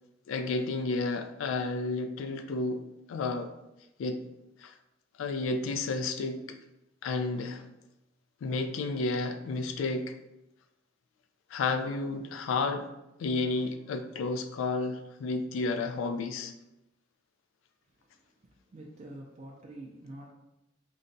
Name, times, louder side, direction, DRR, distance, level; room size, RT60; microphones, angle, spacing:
voice 1, 0.3-2.8 3.1-3.5 4.0-4.2 4.6-4.7 5.2-6.6 7.0-7.6 8.4-10.1 11.5-12.9 13.2-16.5, left 3 dB, 85° left, 8 dB, 0.3 m, -31 dB
voice 2, 18.0-18.3 18.7-20.3, right 1 dB, 35° right, -2 dB, 0.4 m, -46 dB
3.9 x 2.2 x 2.6 m, 0.92 s
head